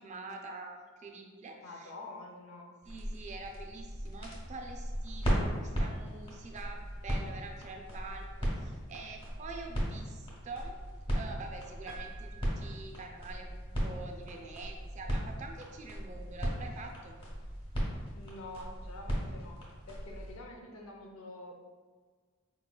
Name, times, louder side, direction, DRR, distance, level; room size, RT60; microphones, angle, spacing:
voice 1, 0.0-1.9 2.9-8.3 8.6-10.8 11.1-17.2, right 3 dB, 35° right, 3 dB, 0.4 m, -46 dB
voice 2, 1.6-2.7 18.1-19.6 19.9-21.6, left 2 dB, 85° left, 1 dB, 0.6 m, -47 dB
sound 1, 2.8-20.3, equal, 25° left, 0.9 m, -37 dB
Piano, 11.9-13.6, right 6 dB, ahead, 0.7 m, -52 dB
4.4 x 2.9 x 2.2 m, 1.5 s
head